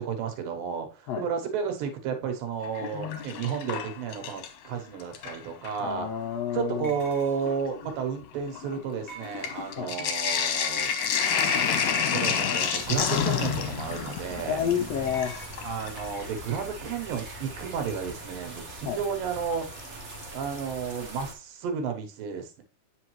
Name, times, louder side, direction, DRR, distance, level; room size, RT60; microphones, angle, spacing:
voice 1, 0.0-6.1 6.5-10.9 12.1-14.6 15.6-19.7 20.3-22.6, right 6 dB, 90° right, 6 dB, 2.8 m, -32 dB
Sink (filling or washing), 2.6-4.7 5.0-5.8 6.6-6.7 7.0-16.1 17.9-18.0 19.8-20.2 20.6-20.7 20.9-21.0, left 7 dB, 70° left, 2.0 m, -29 dB
voice 2, 5.8-6.9 9.8-9.9 14.5-15.3 18.8-19.0, left 8 dB, 85° left, 3 dB, 1.4 m, -29 dB
sound 1, 6.8-7.7 9.1-10.0 12.4-13.1 15.1-15.6, right 1 dB, 55° left, 0.6 m, -44 dB
sound 2, 12.8-21.3, right 1 dB, 55° right, 0.9 m, -41 dB
8.6 x 5.1 x 3.0 m, 0.32 s
omnidirectional pair, 3.9 m